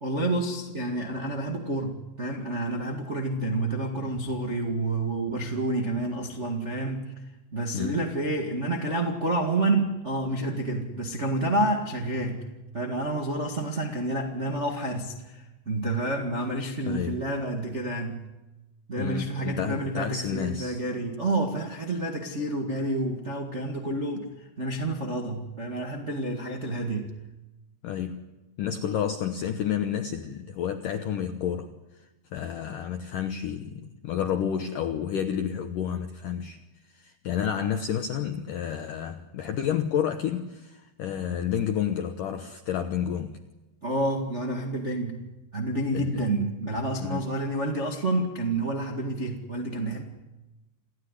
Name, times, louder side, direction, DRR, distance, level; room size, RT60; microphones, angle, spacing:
voice 1, 0.0-7.1 7.5-12.5 12.7-18.3 18.9-27.1 43.8-45.3 45.5-50.0, right 2 dB, 60° right, 1 dB, 0.7 m, -29 dB
voice 2, 7.7-8.0 16.9-17.3 19.0-20.8 27.8-28.2 28.6-31.7 32.3-36.6 36.9-43.4 45.9-46.3 47.0-47.2, left 9 dB, 75° left, 7 dB, 2.0 m, -30 dB
28.0 x 16.5 x 9.9 m, 1.1 s
omnidirectional pair, 5.2 m